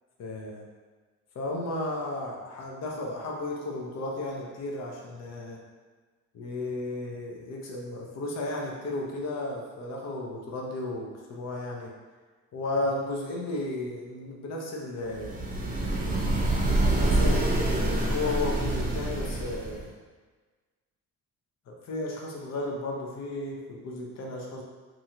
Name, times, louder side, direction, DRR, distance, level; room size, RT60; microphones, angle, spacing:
voice 1, 0.2-0.6 1.3-5.6 6.3-11.9 12.5-15.5 17.0-19.9 21.7-24.6, left 2 dB, 60° left, -1 dB, 0.7 m, -34 dB
sound 1, 15.1-19.9, right 1 dB, 30° right, 0.6 m, -26 dB
2.9 x 2.4 x 2.8 m, 1.4 s
cardioid pair, 90°, 30 cm